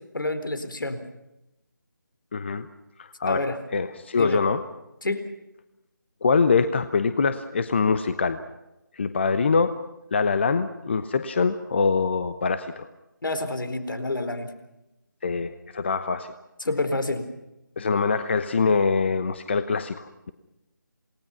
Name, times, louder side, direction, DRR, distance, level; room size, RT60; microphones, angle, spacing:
voice 1, 0.1-1.0 3.3-3.6 4.1-4.4 5.0-5.2 13.2-14.5 16.6-17.3, left 2 dB, 75° left, 10 dB, 4.2 m, -28 dB
voice 2, 2.3-2.7 3.0-3.4 3.7-4.6 6.2-8.4 9.0-9.8 10.1-12.9 15.2-16.3 17.8-20.3, left 4 dB, 35° left, 11 dB, 1.0 m, -24 dB
28.0 x 19.0 x 5.8 m, 0.91 s
figure-of-eight pair, 170°, 11 cm